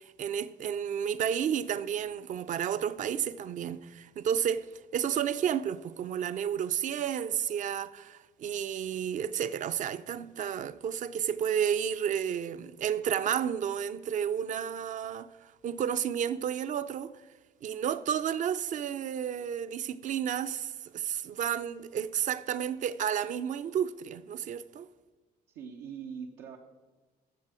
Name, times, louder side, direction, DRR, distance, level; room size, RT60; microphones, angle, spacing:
voice 1, 0.0-4.7 4.9-17.1 17.6-24.9, right 9 dB, 50° right, 0.5 m, -31 dB
voice 2, 25.5-26.6, right 7 dB, 90° right, 0.9 m, -42 dB
14.0 x 6.6 x 4.9 m
cardioid pair, 110°, 17 cm